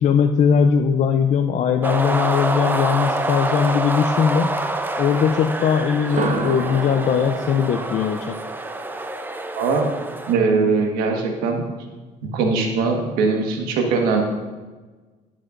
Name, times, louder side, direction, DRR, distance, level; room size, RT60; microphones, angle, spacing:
voice 1, 0.0-4.5 5.0-8.4, left 7 dB, 55° left, 6 dB, 0.5 m, -19 dB
sound 1, 1.8-10.3, right 2 dB, 15° right, 0.7 m, -26 dB
sound 2, 6.0-9.9, right 5 dB, 55° right, 0.8 m, -31 dB
voice 2, 9.6-9.9 10.3-11.6 12.2-14.2, right 4 dB, 85° right, 2 dB, 1.5 m, -21 dB
11.0 x 8.9 x 2.5 m, 1.3 s
cardioid pair, 90°, 15 cm